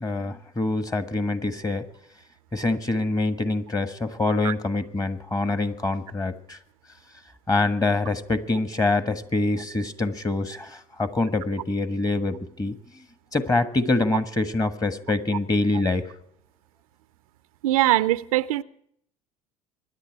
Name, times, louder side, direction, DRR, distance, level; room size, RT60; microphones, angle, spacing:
voice 1, 0.0-1.8 2.5-6.6 7.5-12.8 13.3-16.0, left 2 dB, 20° left, 1.4 m, -25 dB
voice 2, 17.6-18.6, right 15 dB, 75° right, 0.5 m, -21 dB
25.5 x 10.5 x 4.6 m
hypercardioid pair, 65°, 18 cm